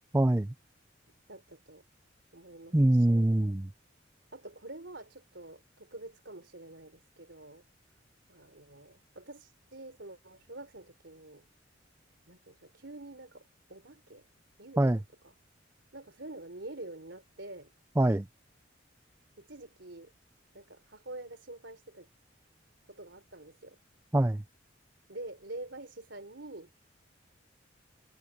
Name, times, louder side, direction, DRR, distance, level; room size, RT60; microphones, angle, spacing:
voice 1, 0.1-0.5 2.7-3.7 14.8-15.0 18.0-18.3 24.1-24.4, right 1 dB, 15° right, 0.5 m, -24 dB
voice 2, 1.3-1.8 2.3-3.3 4.3-7.6 8.3-11.4 12.3-14.3 14.6-15.3 15.9-17.7 19.4-20.1 20.5-22.1 22.9-23.8 25.1-26.7, right 2 dB, 65° right, 4.0 m, -47 dB
head